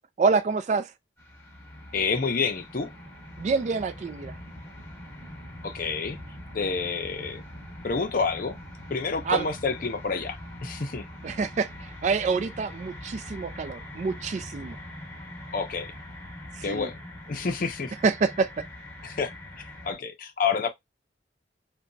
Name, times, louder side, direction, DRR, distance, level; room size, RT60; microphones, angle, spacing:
voice 1, 0.2-0.9 3.4-4.3 9.3-9.5 11.2-11.7 12.0-14.8 16.6-16.9 18.0-18.7, right 4 dB, 40° right, 0.3 m, -26 dB
sound 1, 1.2-20.0, left 1 dB, 15° left, 0.8 m, -43 dB
voice 2, 1.9-2.9 5.6-6.2 6.5-7.4 7.8-8.6 8.9-11.0 15.5-15.9 16.6-17.0 17.3-17.9 19.0-19.3 19.8-20.7, left 5 dB, 50° left, 0.6 m, -28 dB
2.7 x 2.2 x 2.6 m
head